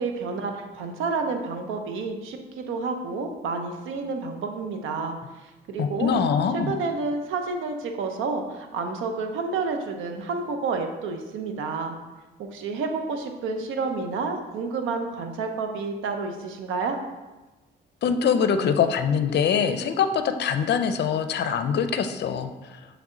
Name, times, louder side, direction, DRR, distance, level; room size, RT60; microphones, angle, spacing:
voice 1, 0.0-5.2 5.4-6.2 6.7-12.0 12.4-17.0, right 4 dB, 85° right, 5 dB, 0.8 m, -30 dB
voice 2, 5.8-6.7 18.0-22.5, left 7 dB, 60° left, 9 dB, 0.5 m, -23 dB
7.3 x 3.4 x 3.8 m, 1.1 s
cardioid pair, 90°, 20 cm